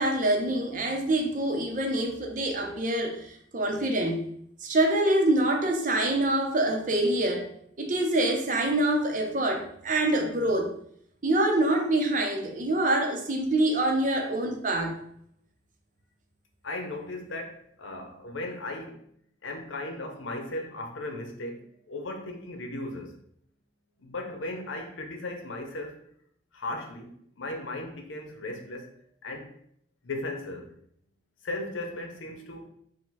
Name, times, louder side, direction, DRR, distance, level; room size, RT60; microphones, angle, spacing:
voice 1, 0.0-4.2 4.6-7.5 7.8-10.7 11.2-15.0, right 1 dB, 45° right, 3 dB, 0.6 m, -25 dB
voice 2, 16.6-19.0 19.4-23.2 24.0-26.0 26.5-28.9 29.2-29.5 30.0-30.7 31.4-32.7, left 2 dB, 85° left, 4 dB, 0.7 m, -36 dB
4.8 x 2.2 x 3.9 m, 0.68 s
head